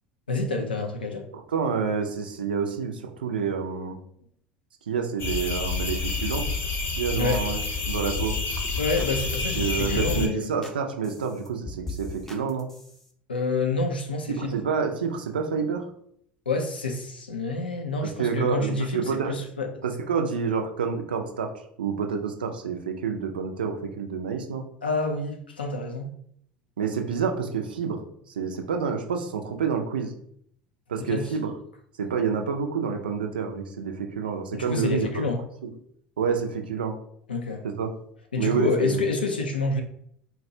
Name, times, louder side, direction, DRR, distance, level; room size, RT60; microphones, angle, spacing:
voice 1, 0.3-1.3 7.1-7.5 8.8-10.5 13.3-14.6 16.5-19.7 24.8-26.1 31.0-31.3 34.5-35.4 37.3-37.7 38.3-39.8, left 3 dB, 85° left, 3 dB, 0.5 m, -28 dB
voice 2, 1.3-4.0 4.9-6.5 7.0-8.4 9.6-12.7 14.3-15.9 18.0-19.3 19.8-21.5 21.8-24.6 26.8-28.0 28.4-30.1 30.9-31.5 32.0-35.2 35.6-35.7 36.2-37.0 37.6-37.9 38.4-39.0, right 6 dB, 80° right, 4 dB, 0.4 m, -28 dB
sound 1, 5.2-10.3, left 4 dB, 45° left, 0.7 m, -28 dB
sound 2, 6.5-6.6 6.9-7.5 7.7-8.0 8.3-8.5 8.8-9.8 10.2-10.8 11.0-13.1, left 3 dB, 5° left, 0.6 m, -39 dB
3.9 x 2.2 x 2.6 m, 0.67 s
figure-of-eight pair, 70°, 5 cm